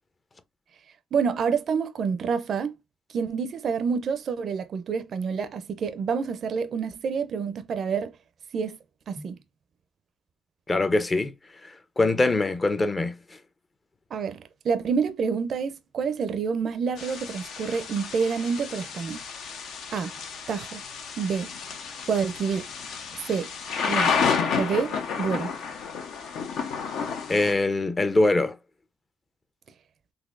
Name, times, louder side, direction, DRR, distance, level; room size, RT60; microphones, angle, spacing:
voice 1, 1.1-2.8 3.1-8.1 8.5-8.8 9.1-9.4 14.1-19.2 19.9-20.1 20.5-20.8 21.2-21.5 22.1-22.7 23.2-23.5 23.9-24.3 24.6-25.5, right 6 dB, 60° right, 0.4 m, -28 dB
voice 2, 10.7-11.3 11.6-13.2 27.3-28.6, left 2 dB, 30° left, 0.5 m, -23 dB
Thunder / Rain, 17.0-27.5, left 6 dB, 80° left, 0.7 m, -31 dB
3.9 x 2.7 x 2.4 m
cardioid pair, 90°, 0 cm